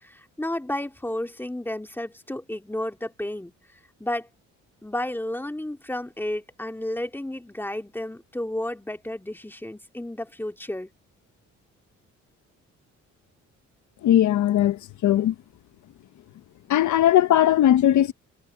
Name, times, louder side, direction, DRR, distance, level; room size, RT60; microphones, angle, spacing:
voice 1, 0.0-3.5 4.0-4.3 4.8-10.9, left 1 dB, 5° left, 2.6 m, -32 dB
voice 2, 14.0-15.3 16.7-18.1, left 12 dB, 75° left, 1.3 m, -19 dB
cardioid pair, 90°, 30 cm